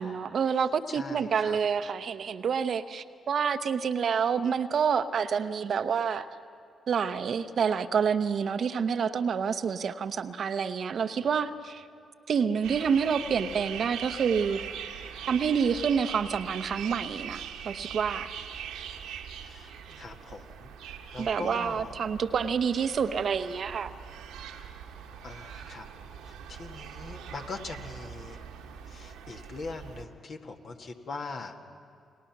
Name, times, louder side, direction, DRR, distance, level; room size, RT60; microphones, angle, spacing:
voice 1, 0.0-6.3 6.9-11.8 12.3-14.6 15.3-18.3 21.2-23.9, right 6 dB, 60° right, 10 dB, 0.8 m, -28 dB
voice 2, 0.9-1.6 19.4-19.7 20.0-21.9 25.2-25.9 26.3-28.4 28.9-31.7, left 3 dB, 60° left, 3 dB, 2.0 m, -41 dB
sound 1, 12.6-30.0, right 8 dB, 80° right, 1.4 m, -42 dB
29.5 x 19.0 x 6.0 m, 2.4 s
hypercardioid pair, 40°, 0 cm